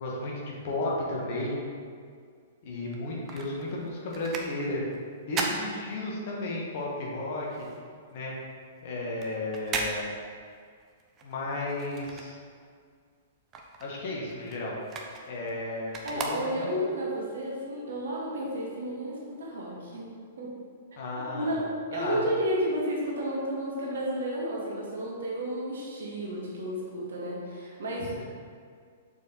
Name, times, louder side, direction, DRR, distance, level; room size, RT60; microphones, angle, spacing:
voice 1, 0.0-1.6 2.6-4.8 5.3-7.7 8.1-8.3 8.8-10.1 11.2-12.4 13.8-14.8 15.3-16.7 21.0-21.6 21.9-22.2 28.0-28.2, left 2 dB, 45° left, -3 dB, 1.5 m, -33 dB
sound 1, 2.8-6.5 6.9-12.9 13.2-17.0 17.5-17.6, right 3 dB, 25° right, 0.7 m, -38 dB
voice 2, 16.0-20.5 21.3-21.6 21.9-28.2, equal, 60° right, -4 dB, 1.8 m, -32 dB
6.8 x 4.7 x 4.0 m, 2.1 s
figure-of-eight pair, 105°, 0 cm